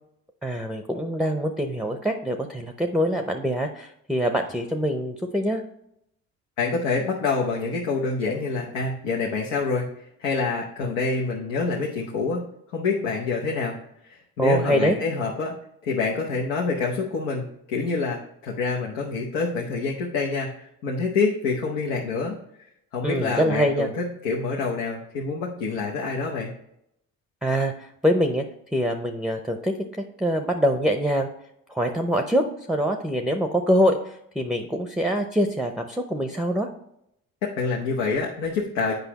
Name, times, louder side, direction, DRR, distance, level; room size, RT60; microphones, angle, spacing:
voice 1, 0.4-5.6 14.4-15.0 23.0-23.9 27.4-28.4 28.7-29.7 30.2-31.3 31.7-36.7, equal, ahead, 5 dB, 0.6 m, -24 dB
voice 2, 6.6-9.9 10.2-12.4 12.7-13.8 14.0-15.5 15.8-22.3 22.9-26.5 37.6-38.9, left 4 dB, 85° left, -2 dB, 0.9 m, -27 dB
8.1 x 5.1 x 3.0 m, 0.77 s
hypercardioid pair, 55°, 38 cm